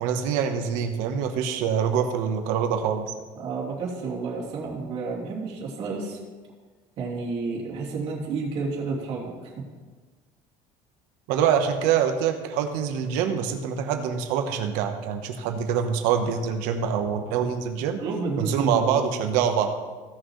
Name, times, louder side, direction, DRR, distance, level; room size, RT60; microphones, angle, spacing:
voice 1, 0.0-3.1 11.3-18.0 18.4-19.7, right 7 dB, 75° right, 5 dB, 1.2 m, -25 dB
voice 2, 3.3-6.2 7.0-9.5 18.0-19.1, right 4 dB, 45° right, -4 dB, 2.7 m, -30 dB
16.5 x 6.4 x 3.2 m, 1.4 s
cardioid pair, 165°, 14 cm